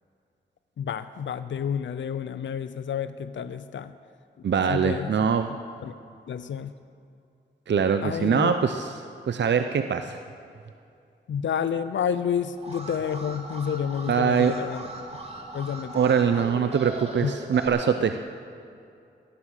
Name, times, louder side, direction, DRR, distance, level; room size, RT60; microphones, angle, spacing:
voice 1, 0.8-3.9 4.7-5.1 5.8-5.9 6.3-6.7 8.0-8.5 11.3-14.8 15.5-16.8 17.2-17.3, left 8 dB, 75° left, 12 dB, 0.6 m, -30 dB
voice 2, 4.4-5.5 7.7-9.0 9.3-10.2 14.1-14.5 15.9-18.2, right 7 dB, 70° right, 8 dB, 0.7 m, -23 dB
Alarm, 12.5-17.7, right 2 dB, 30° right, 3.1 m, -39 dB
17.5 x 11.0 x 6.5 m, 2.5 s
cardioid pair, 60°, 19 cm